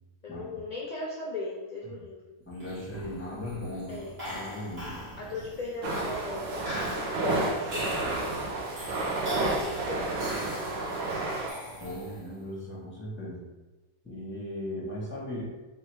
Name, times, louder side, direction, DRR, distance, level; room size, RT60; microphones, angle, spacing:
voice 1, 0.2-2.2 3.9-4.1 5.2-6.7 7.1-8.5 9.4-10.1, left 3 dB, 45° left, -4 dB, 0.5 m, -37 dB
voice 2, 2.5-5.0 11.8-13.5 14.0-15.6, left 1 dB, 10° left, -5 dB, 1.0 m, -38 dB
sound 1, 2.5-12.4, equal, 45° right, 1.5 m, -41 dB
sound 2, 5.8-11.5, right 2 dB, 85° right, 1.2 m, -31 dB
3.2 x 2.8 x 4.6 m, 1.2 s
omnidirectional pair, 1.5 m